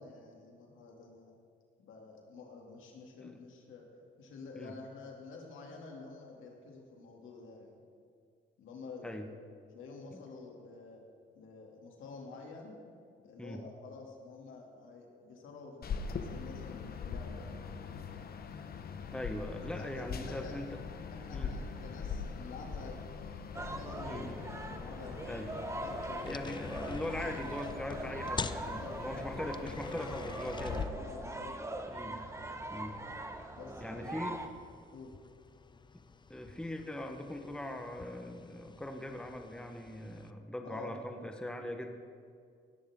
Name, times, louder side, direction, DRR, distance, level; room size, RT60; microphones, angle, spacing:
voice 1, 0.0-1.4 1.8-3.9 4.2-7.8 8.6-9.2 9.7-11.0 11.3-12.8 13.2-17.6 19.7-20.5 21.1-25.3 25.8-26.5 28.6-29.5 30.9-32.0 33.5-34.2 34.9-35.1 40.6-40.9, left 4 dB, 80° left, 0 dB, 2.7 m, -49 dB
sound 1, 15.8-30.8, left 5 dB, 50° left, 1.1 m, -42 dB
voice 2, 19.1-20.8 21.3-21.6 24.0-24.3 25.2-25.5 26.2-30.9 31.9-32.2 32.7-33.0 33.8-34.4 36.3-41.9, left 1 dB, 5° left, 4 dB, 1.2 m, -41 dB
sound 2, 23.5-34.5, right 2 dB, 15° right, 1.0 m, -42 dB
sound 3, 25.3-40.3, left 4 dB, 25° left, 0.5 m, -48 dB
18.0 x 13.5 x 3.8 m, 2.2 s
cardioid pair, 90°, 20 cm